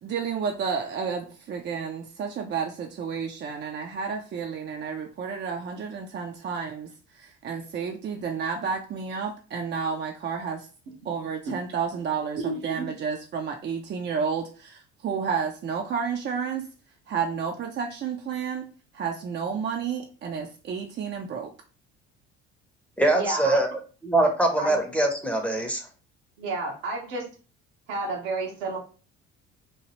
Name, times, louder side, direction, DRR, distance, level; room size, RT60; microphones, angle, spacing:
voice 1, 0.0-6.9 7.2-10.7 11.0-16.7 17.1-21.5, right 6 dB, 35° right, 2 dB, 0.5 m, -31 dB
voice 2, 12.4-12.9 23.2-23.6 24.6-24.8 26.4-27.3 27.9-28.8, right 2 dB, 75° right, 0 dB, 1.0 m, -31 dB
voice 3, 23.0-23.7 24.0-25.8, right 2 dB, 5° left, 2 dB, 0.7 m, -23 dB
3.0 x 2.3 x 3.0 m, 0.37 s
hypercardioid pair, 70°, 32 cm